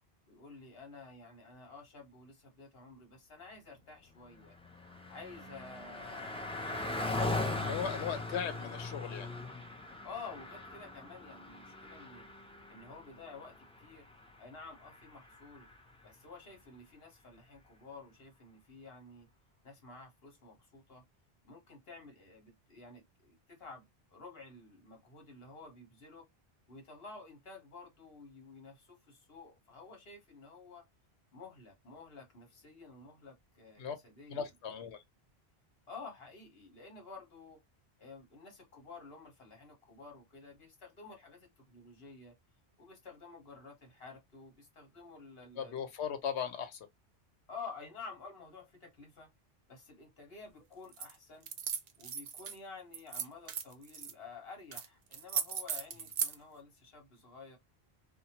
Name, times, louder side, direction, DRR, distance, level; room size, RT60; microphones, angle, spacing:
voice 1, 0.3-4.5 5.1-7.9 10.0-12.3 12.7-14.1 14.4-15.7 16.0-19.3 19.6-21.0 21.4-26.3 26.7-30.9 31.3-34.5 35.9-37.6 38.0-42.4 42.8-45.8 47.5-49.3 49.7-51.5 52.0-57.6, left 4 dB, 65° left, 1.4 m, -51 dB
Car passing by, 4.1-15.9, left 2 dB, 10° left, 0.3 m, -40 dB
voice 2, 7.6-9.3 33.8-34.0 34.3-35.0 45.6-46.8, left 7 dB, 90° left, 1.0 m, -37 dB
sound 1, 50.9-51.1 51.4-52.6 52.9-54.1 54.7-54.9 55.1-56.3, right 7 dB, 55° right, 0.5 m, -37 dB
2.8 x 2.2 x 2.8 m
omnidirectional pair, 1.1 m